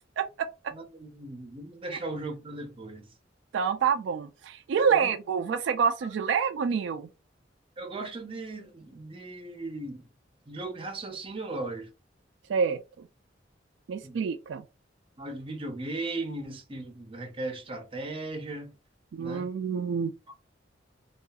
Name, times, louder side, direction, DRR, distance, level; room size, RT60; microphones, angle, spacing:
voice 1, 0.2-0.5 3.5-7.1 12.5-12.8 13.9-14.6 19.1-20.1, right 6 dB, 80° right, 0.3 m, -27 dB
voice 2, 0.7-3.1 4.8-5.1 6.0-6.1 7.8-10.1 10.5-11.9 14.0-14.2 15.2-18.7 19.2-19.5, right 2 dB, 30° right, 0.6 m, -37 dB
2.7 x 2.4 x 2.3 m
head